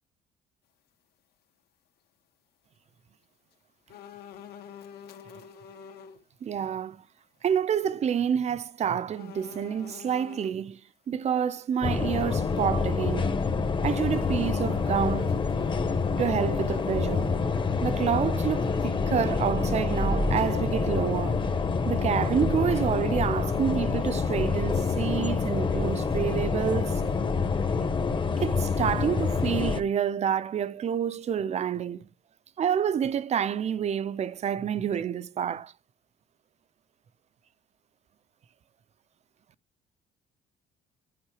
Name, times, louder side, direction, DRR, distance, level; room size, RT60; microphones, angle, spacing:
sound 1, 3.9-6.2 6.6-6.7 9.1-10.6 14.1-17.2 17.6-17.7, left 8 dB, 70° left, 1.9 m, -47 dB
voice 1, 6.4-7.0 7.4-10.8 11.1-13.4 13.8-15.4 16.2-17.4 17.8-21.4 21.9-27.0 28.4-32.1 32.6-35.7, right 8 dB, 40° right, 0.6 m, -28 dB
sound 2, 11.8-29.8, left 4 dB, 30° left, 1.2 m, -27 dB
sound 3, 19.5-22.4, right 1 dB, 10° left, 0.6 m, -34 dB
11.5 x 5.6 x 4.9 m
cardioid pair, 110°, 17 cm